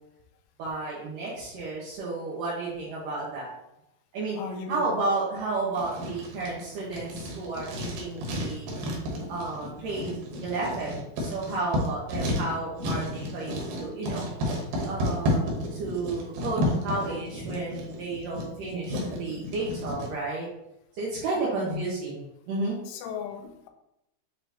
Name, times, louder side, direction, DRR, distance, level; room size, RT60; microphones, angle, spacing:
voice 1, 0.6-3.5 4.1-4.4 4.7-8.7 9.3-10.1 10.4-14.3 14.8-20.5 20.9-22.8, right 3 dB, 85° right, -6 dB, 1.9 m, -32 dB
voice 2, 4.4-5.0 21.3-21.9 22.9-23.7, left 6 dB, 80° left, 5 dB, 3.2 m, -36 dB
Writing, 5.7-20.1, left 1 dB, 65° right, 2.6 m, -32 dB
9.6 x 3.4 x 3.0 m, 0.84 s
omnidirectional pair, 5.6 m